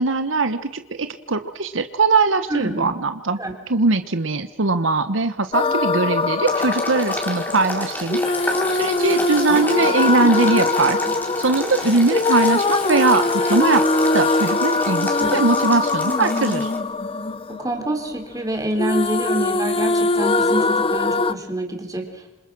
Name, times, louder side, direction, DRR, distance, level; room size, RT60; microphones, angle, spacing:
voice 1, 0.0-3.4 3.7-11.0 11.4-13.8 14.1-16.7, right 3 dB, 80° right, 10 dB, 1.2 m, -21 dB
voice 2, 2.5-2.9 3.4-3.5 15.2-15.4 17.5-22.3, right 1 dB, 20° right, 4 dB, 3.8 m, -27 dB
sound 1, 5.5-18.5 18.8-21.3, left 3 dB, 30° left, 0.8 m, -22 dB
Boiling, 6.5-16.8, left 1 dB, 10° left, 3.8 m, -31 dB
27.5 x 27.0 x 6.2 m, 1.0 s
head